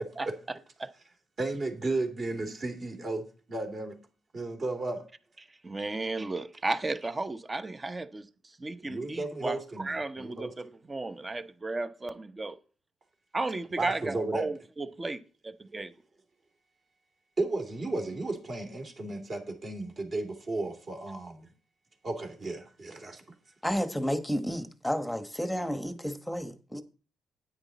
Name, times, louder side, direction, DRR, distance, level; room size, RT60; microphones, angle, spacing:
voice 1, 1.4-4.0 4.3-5.0 8.8-10.5 13.8-14.5 17.4-21.5 22.0-23.2, right 2 dB, 40° right, 2.9 m, -34 dB
voice 2, 5.6-8.2 8.6-12.5 13.3-15.9, right 2 dB, 25° right, 0.8 m, -34 dB
voice 3, 23.6-26.8, equal, 5° left, 1.1 m, -31 dB
9.8 x 9.1 x 4.1 m
cardioid pair, 90°, 0 cm